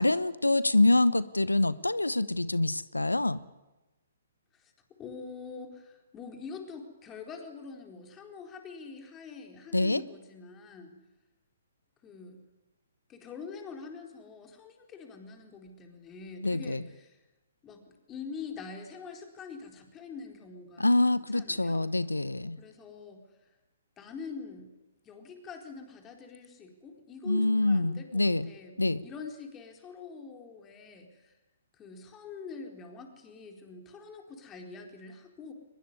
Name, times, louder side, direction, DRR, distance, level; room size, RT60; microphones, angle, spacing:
voice 1, 0.0-3.4 9.7-10.0 16.4-16.8 20.8-22.6 27.2-28.5 28.8-29.0, left 2 dB, 85° left, 18 dB, 1.0 m, -26 dB
voice 2, 4.5-11.0 12.0-12.4 13.1-17.2 17.6-22.0 22.6-23.5 24.0-24.7 25.0-31.3 31.7-35.5, left 5 dB, 20° left, 3 dB, 4.2 m, -45 dB
23.0 x 21.0 x 9.9 m, 1.1 s
figure-of-eight pair, 125°, 0 cm